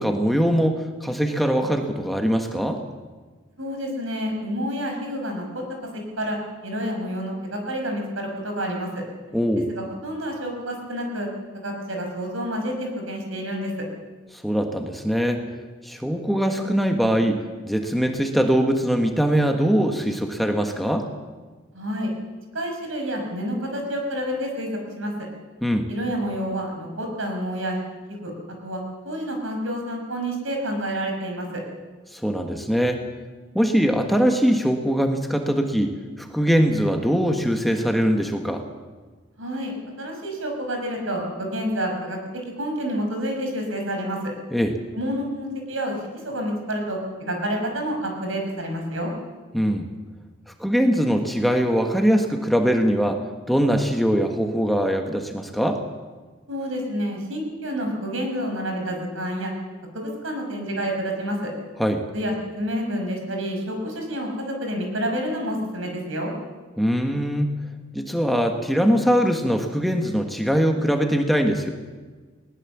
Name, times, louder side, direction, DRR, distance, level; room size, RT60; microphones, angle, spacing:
voice 1, 0.0-2.8 9.3-9.7 14.3-15.4 15.8-17.4 17.6-21.1 25.6-25.9 32.1-33.0 33.5-38.6 44.5-44.7 49.5-49.9 50.6-53.2 53.5-55.8 61.8-62.0 66.8-67.5 67.9-71.7, equal, ahead, 4 dB, 1.4 m, -22 dB
voice 2, 3.6-5.6 6.2-6.4 6.6-9.0 9.7-11.3 11.6-13.7 21.7-22.1 22.5-24.7 25.0-25.1 25.9-27.8 28.2-28.3 28.6-31.6 39.4-44.3 44.9-46.0 46.2-49.1 56.5-59.5 59.9-61.5 62.1-66.3, equal, 80° right, 2 dB, 5.9 m, -29 dB
20.0 x 19.0 x 7.4 m, 1.4 s
head